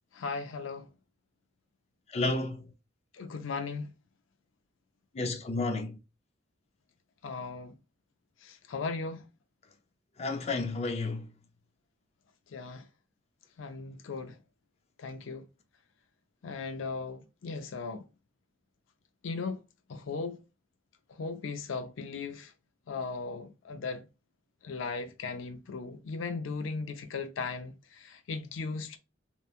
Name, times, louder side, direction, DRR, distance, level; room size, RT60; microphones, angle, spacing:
voice 1, 0.1-0.9 3.1-3.9 7.2-7.8 8.4-9.3 12.5-12.9 13.6-14.4 15.0-15.5 16.4-18.0 19.2-19.6 19.9-20.4 21.1-22.5 22.9-24.1 24.6-29.0, left 4 dB, 90° left, 0.5 m, -37 dB
voice 2, 2.1-2.7 5.1-6.0 10.2-11.3, left 3 dB, 35° left, 0.5 m, -31 dB
3.0 x 2.2 x 2.4 m
head